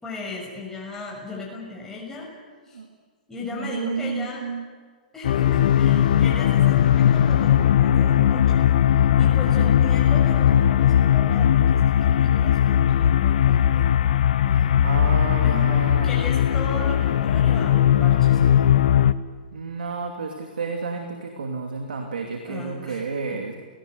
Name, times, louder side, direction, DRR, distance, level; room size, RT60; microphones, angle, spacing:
voice 1, 0.0-2.3 2.7-2.8 3.3-4.5 5.1-8.7 9.2-14.0 14.4-18.6 22.4-23.0 23.3-23.4, left 3 dB, 10° left, -4 dB, 6.6 m, -36 dB
voice 2, 3.5-4.7 14.8-16.1 19.5-23.6, right 4 dB, 80° right, 3 dB, 2.7 m, -31 dB
sound 1, 5.2-19.1, left 10 dB, 65° left, 1.0 m, -18 dB
30.0 x 18.5 x 8.0 m, 1.5 s
hypercardioid pair, 125°, 5 cm